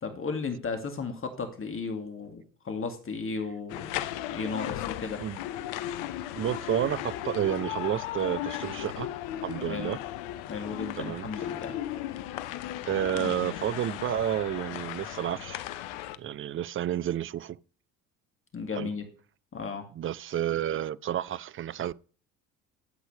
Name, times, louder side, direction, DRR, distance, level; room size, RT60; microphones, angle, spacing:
voice 1, 0.0-4.0 4.3-5.2 9.7-9.9 10.5-11.8 18.5-19.0 19.5-19.9, left 4 dB, 30° left, 2.3 m, -35 dB
sound 1, 3.7-16.2, left 13 dB, 70° left, 0.9 m, -36 dB
voice 2, 6.4-9.1 9.4-10.0 11.0-11.3 12.8-15.6 16.2-17.6 18.7-18.9 19.9-21.9, right 10 dB, 30° right, 0.5 m, -30 dB
13.0 x 8.1 x 3.4 m
hypercardioid pair, 65°, 41 cm